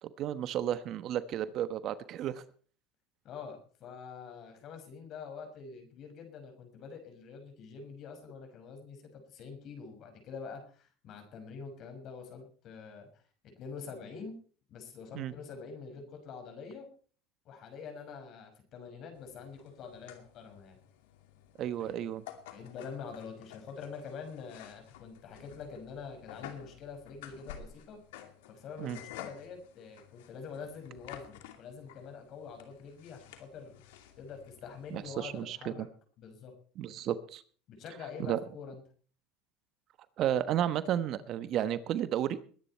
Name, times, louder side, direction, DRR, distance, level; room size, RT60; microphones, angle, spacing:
voice 1, 0.0-2.4 15.1-15.3 21.6-22.2 28.8-29.0 34.9-35.9 36.8-37.4 38.2-38.4 40.2-42.4, right 11 dB, 50° right, 13 dB, 1.2 m, -32 dB
voice 2, 3.2-14.4 14.7-16.9 17.4-20.8 21.8-22.0 22.5-28.0 28.5-35.9 36.2-36.5 37.7-38.8, left 5 dB, 50° left, 5 dB, 6.1 m, -46 dB
sound 1, 19.1-35.4, left 10 dB, 85° left, 2.5 m, -52 dB
21.0 x 10.0 x 4.5 m, 0.43 s
supercardioid pair, 110°, 0 cm